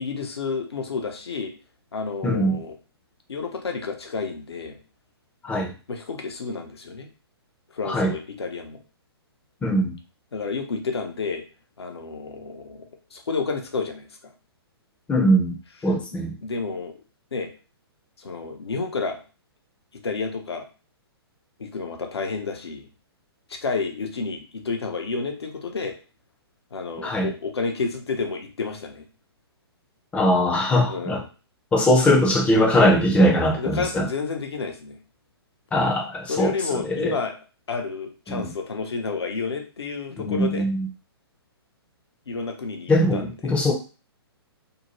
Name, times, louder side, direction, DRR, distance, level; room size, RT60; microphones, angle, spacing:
voice 1, 0.0-1.5 1.9-2.7 3.3-4.8 5.9-7.1 7.7-8.8 10.3-11.4 11.8-12.8 13.1-14.3 16.4-17.0 17.3-17.5 18.2-19.2 20.0-20.7 21.6-22.9 23.5-26.0 26.7-29.0 30.8-31.2 33.6-35.0 36.3-37.3 37.7-40.7 42.3-43.6, left 4 dB, 75° left, 4 dB, 0.7 m, -30 dB
voice 2, 2.2-2.6 5.4-5.7 7.9-8.1 9.6-9.9 15.1-15.6 15.8-16.3 27.0-27.3 30.1-31.2 31.7-34.1 35.7-37.1 38.3-38.5 40.2-40.9 42.9-43.7, equal, 10° left, 1 dB, 0.5 m, -21 dB
2.7 x 2.1 x 3.0 m, 0.35 s
figure-of-eight pair, 125°, 14 cm